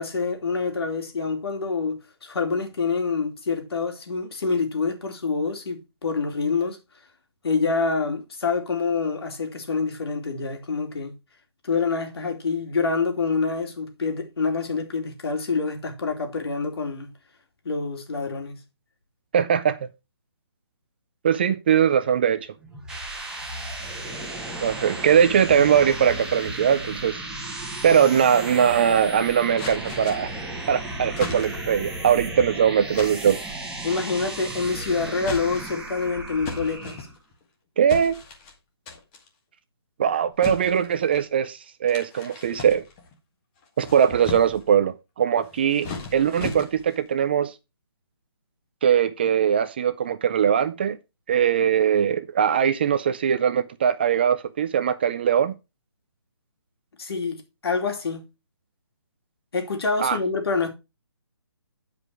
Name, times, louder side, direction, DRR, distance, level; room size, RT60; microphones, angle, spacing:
voice 1, 0.0-6.8 7.4-11.2 11.6-17.1 17.6-18.6 33.8-37.1 57.0-58.3 59.5-60.7, left 4 dB, 65° left, 2.8 m, -26 dB
voice 2, 19.3-19.8 21.2-22.4 24.6-27.2 27.8-30.3 30.7-33.4 37.8-38.2 40.0-42.8 43.8-47.5 48.8-51.0 51.3-55.5 60.0-60.2, right 8 dB, 25° right, 0.4 m, -21 dB
sound 1, 22.6-37.1, right 1 dB, 5° right, 1.3 m, -34 dB
sound 2, 29.6-30.4 31.2-31.8 32.9-33.4 34.4-34.8 35.2-35.9 36.4-37.4 37.9-38.5 38.9-39.3 40.4-41.3 41.9-43.1 43.6-44.7 45.4-47.0, left 4 dB, 20° left, 1.5 m, -37 dB
9.6 x 5.0 x 4.7 m
hypercardioid pair, 165°, 14 cm